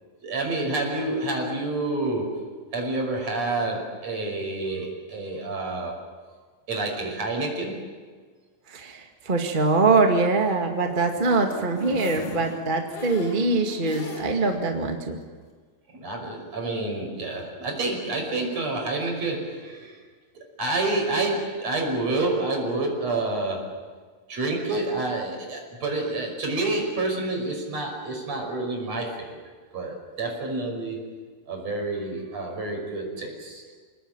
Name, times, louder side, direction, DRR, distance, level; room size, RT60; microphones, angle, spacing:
voice 1, 0.2-6.0 6.7-7.8 15.9-20.0 20.6-23.7 24.3-29.3 29.7-31.2 31.5-33.6, right 2 dB, 45° right, 1 dB, 6.8 m, -28 dB
voice 2, 8.7-15.2, right 3 dB, 20° right, 3 dB, 1.3 m, -23 dB
sound 1, 10.6-14.6 15.0-15.1 15.4-15.5, left 2 dB, 75° left, 5.6 m, -39 dB
29.0 x 19.5 x 9.1 m, 1.5 s
omnidirectional pair, 4.1 m